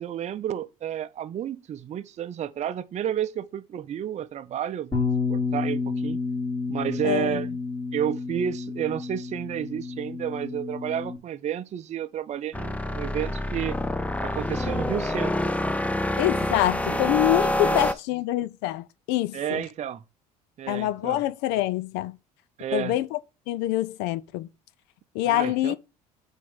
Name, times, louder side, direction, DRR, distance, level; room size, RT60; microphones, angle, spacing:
voice 1, 0.0-5.0 5.3-6.2 6.7-7.5 7.9-13.8 14.2-15.5 16.9-17.0 17.6-17.8 19.3-20.0 20.6-21.2 22.6-23.0 25.2-25.8, right 10 dB, 40° right, 0.6 m, -31 dB
Bass guitar, 4.9-11.2, left 4 dB, 25° left, 2.9 m, -30 dB
voice 2, 7.0-7.4 16.2-19.6 20.7-22.2 22.7-23.2 23.5-24.5 25.1-25.8, left 15 dB, 65° left, 0.5 m, -25 dB
sound 1, 12.5-17.9, left 1 dB, 5° left, 0.6 m, -27 dB
7.4 x 3.7 x 5.5 m
hypercardioid pair, 70°, 18 cm